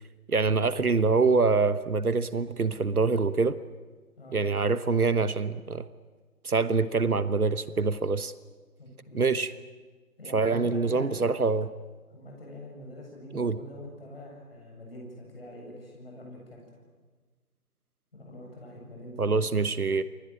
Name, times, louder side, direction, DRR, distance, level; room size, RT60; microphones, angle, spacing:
voice 1, 0.3-3.6 4.3-5.9 6.4-8.3 9.1-9.5 10.3-11.7 13.3-13.6 19.2-20.0, right 4 dB, 70° right, 14 dB, 1.3 m, -25 dB
voice 2, 8.8-9.3 10.2-11.3 12.1-16.8 18.1-19.7, left 1 dB, 40° left, -1 dB, 7.7 m, -44 dB
28.0 x 22.0 x 9.0 m, 1.4 s
figure-of-eight pair, 160°, 45 cm